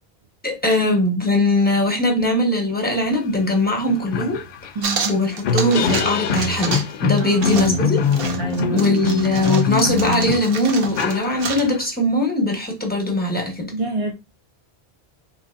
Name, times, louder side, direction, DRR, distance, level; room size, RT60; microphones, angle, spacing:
voice 1, 0.4-4.4 5.1-8.0 8.7-13.7, left 1 dB, 10° left, 1.1 m, -20 dB
sound 1, 3.3-3.4 3.8-11.8, left 5 dB, 65° left, 0.7 m, -24 dB
voice 2, 4.8-5.2 7.2-7.6 8.4-8.8 13.7-14.1, right 4 dB, 40° right, 0.6 m, -26 dB
sound 2, 4.8-6.1 6.3-6.9 7.2-11.7, right 5 dB, 70° right, 0.9 m, -29 dB
3.9 x 3.1 x 2.5 m
omnidirectional pair, 1.0 m